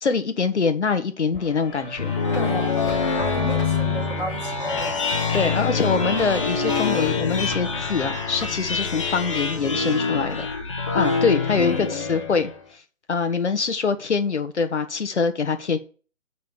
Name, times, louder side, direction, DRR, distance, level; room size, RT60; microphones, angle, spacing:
voice 1, 0.0-2.1 5.3-10.5 10.9-12.8 13.1-15.8, left 5 dB, 60° left, 1.3 m, -24 dB
sound 1, 1.3-9.0, left 4 dB, 40° left, 2.4 m, -43 dB
Bowed string instrument, 1.3-8.4, equal, 20° right, 4.0 m, -43 dB
sound 2, 1.7-12.6, left 4 dB, 25° left, 0.9 m, -25 dB
voice 2, 2.3-2.8 3.1-5.0 11.5-12.2, left 1 dB, 5° left, 3.8 m, -33 dB
6.5 x 5.7 x 6.4 m
figure-of-eight pair, 155°, 39 cm